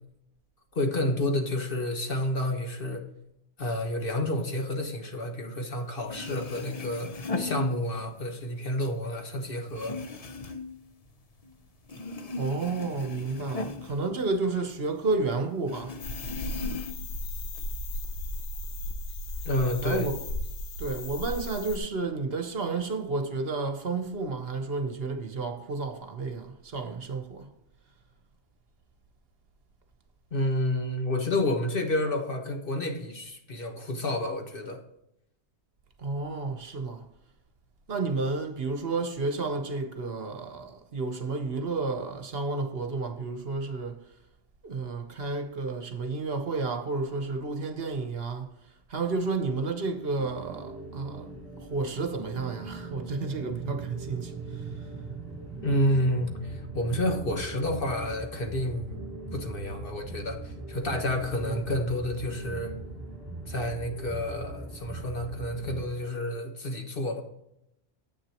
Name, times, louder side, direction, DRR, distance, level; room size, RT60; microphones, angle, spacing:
voice 1, 0.7-3.1 3.6-10.0 19.4-20.1 30.3-34.8 55.6-59.0 59.3-62.7 63.5-67.2, left 1 dB, 55° left, 1.6 m, -30 dB
sound 1, 5.8-5.9 6.1-8.3 8.6-11.6 11.8-14.8 15.1-15.2 15.7-17.2 17.5-18.3, left 3 dB, 40° left, 0.7 m, -38 dB
voice 2, 12.4-16.0 19.8-20.2 20.8-27.5 36.0-37.0 37.9-44.0 44.6-48.5 48.9-51.3 51.6-54.6 61.4-61.6, right 3 dB, 60° right, 1.2 m, -31 dB
sound 2, 16.0-21.8, left 1 dB, 75° left, 1.1 m, -35 dB
sound 3, 50.2-65.9, right 3 dB, 20° right, 3.3 m, -40 dB
10.0 x 8.3 x 3.0 m
omnidirectional pair, 1.1 m